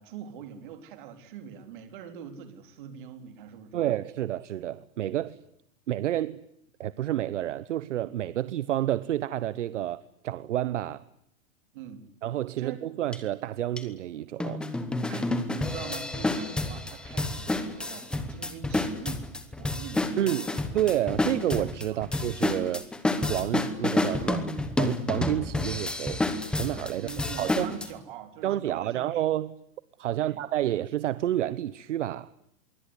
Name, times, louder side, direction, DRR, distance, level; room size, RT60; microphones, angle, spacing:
voice 1, 0.0-3.9 11.7-12.1 12.6-12.8 15.1-19.3 19.6-20.7 21.9-22.1 26.9-29.2 30.2-30.4, right 8 dB, 40° right, 8 dB, 3.8 m, -43 dB
voice 2, 3.7-5.4 5.9-6.4 6.8-11.0 12.2-14.6 20.2-20.5 20.7-22.8 23.2-24.5 24.8-26.2 26.6-27.7 28.4-29.5 30.0-32.3, right 12 dB, 60° right, 17 dB, 1.1 m, -29 dB
sound 1, 13.1-13.2 13.8-13.9 14.4-27.9, left 2 dB, ahead, 1.0 m, -29 dB
25.5 x 23.0 x 9.8 m, 0.75 s
supercardioid pair, 175°, 40 cm